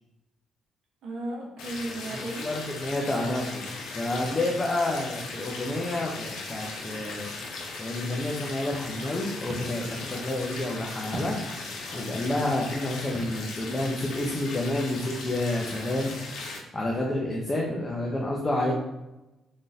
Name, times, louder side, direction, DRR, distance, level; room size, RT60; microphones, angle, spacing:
voice 1, 1.0-2.5 18.6-18.7, right 1 dB, 80° right, -2 dB, 1.0 m, -35 dB
sound 1, 1.6-16.6, left 3 dB, 85° left, 0.8 m, -38 dB
voice 2, 2.1-3.7 3.9-7.3 7.8-11.4 11.9-16.1 16.7-18.7, left 1 dB, 20° left, -2 dB, 0.7 m, -29 dB
sound 2, 6.3-7.8 8.5-9.9 10.3-11.5 12.1-13.2, right 2 dB, 50° right, 0.7 m, -45 dB
3.7 x 3.7 x 2.7 m, 0.98 s
cardioid pair, 90°, 0 cm